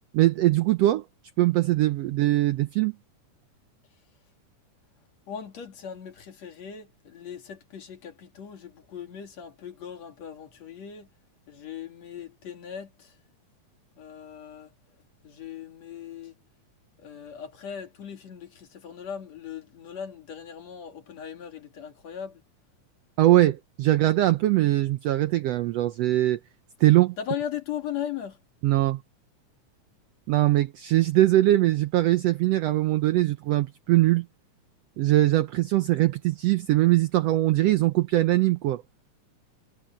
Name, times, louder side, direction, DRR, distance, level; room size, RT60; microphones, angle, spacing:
voice 1, 0.1-1.0 1.4-2.9 23.2-26.4 26.8-27.1 28.6-29.0 30.3-34.3 35.0-38.8, right 15 dB, 80° right, 1.5 m, -21 dB
voice 2, 5.3-11.1 11.5-13.2 14.0-14.7 15.2-16.4 17.0-22.4 27.2-28.4, left 8 dB, 60° left, 3.5 m, -38 dB
omnidirectional pair, 3.6 m